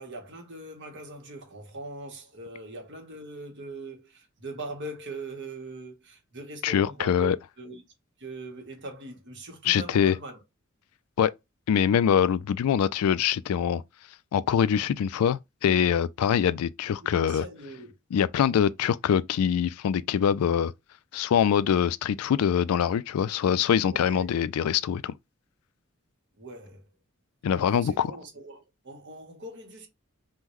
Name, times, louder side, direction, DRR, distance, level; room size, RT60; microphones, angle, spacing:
voice 1, 0.0-7.8 8.2-10.4 17.0-17.9 23.9-24.3 26.4-26.9 27.5-29.9, right 2 dB, 55° right, 1.1 m, -41 dB
voice 2, 6.6-7.4 9.7-10.1 11.2-11.3 11.7-13.8 14.3-17.4 18.1-20.7 21.1-25.1 27.4-28.1, left 8 dB, 85° left, 0.3 m, -24 dB
3.7 x 2.1 x 3.0 m
head